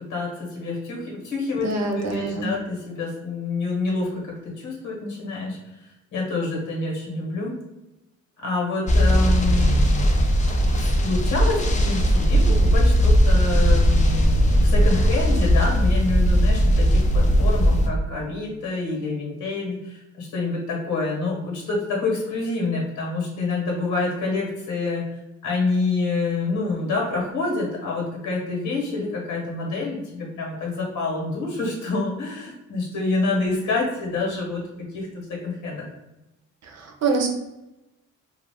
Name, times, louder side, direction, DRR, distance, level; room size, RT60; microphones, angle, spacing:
voice 1, 0.0-1.7 1.9-7.6 8.4-9.8 10.7-25.0 25.4-34.6 34.9-35.9, left 3 dB, 80° left, -1 dB, 1.2 m, -27 dB
voice 2, 1.6-2.5 36.7-37.3, right 3 dB, 60° right, 3 dB, 0.7 m, -25 dB
sound 1, 8.9-17.9, equal, 25° left, 0.5 m, -18 dB
2.5 x 2.4 x 3.4 m, 0.95 s
cardioid pair, 90°, 30 cm